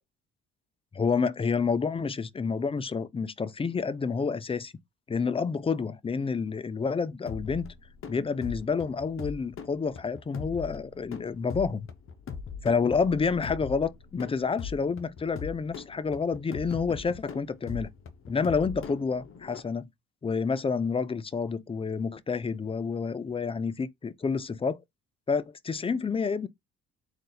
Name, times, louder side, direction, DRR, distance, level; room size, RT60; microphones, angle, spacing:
voice 1, 0.9-4.7 5.1-7.7 8.1-11.9 12.6-17.9 18.3-19.9 20.2-24.8 25.3-26.5, left 5 dB, 20° left, 0.4 m, -29 dB
sound 1, 7.3-19.6, left 5 dB, 45° left, 0.8 m, -41 dB
3.9 x 2.6 x 3.9 m
cardioid pair, 90°, 30 cm